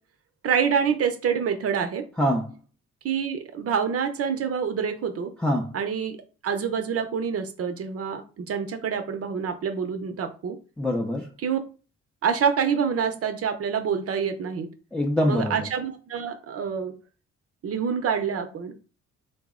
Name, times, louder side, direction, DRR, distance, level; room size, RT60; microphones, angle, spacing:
voice 1, 0.4-2.0 3.0-5.3 5.7-6.1 6.4-10.6 11.4-11.6 12.2-14.7 15.3-16.9 17.6-18.7, right 7 dB, 50° right, 7 dB, 0.6 m, -26 dB
voice 2, 2.2-2.5 5.4-5.7 10.8-11.3 14.9-15.6, equal, 5° left, -2 dB, 0.5 m, -24 dB
3.8 x 2.0 x 3.6 m, 0.36 s
cardioid pair, 90°, 30 cm